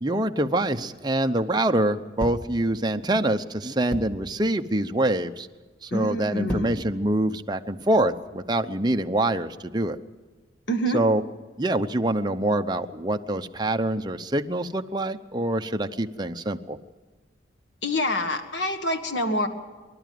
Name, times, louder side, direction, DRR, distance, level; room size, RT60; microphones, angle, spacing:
voice 1, 0.0-5.5 5.8-10.0 10.9-11.2 11.6-16.8, right 1 dB, 20° right, 6 dB, 0.7 m, -25 dB
sound 1, 2.2-2.6 3.9-4.3 5.1-5.4 6.2-6.9 7.5-8.4, equal, 10° left, 2.1 m, -35 dB
voice 2, 5.9-6.7 10.7-11.0 17.8-19.5, equal, 70° left, 6 dB, 1.6 m, -26 dB
25.0 x 12.0 x 9.4 m, 1.4 s
head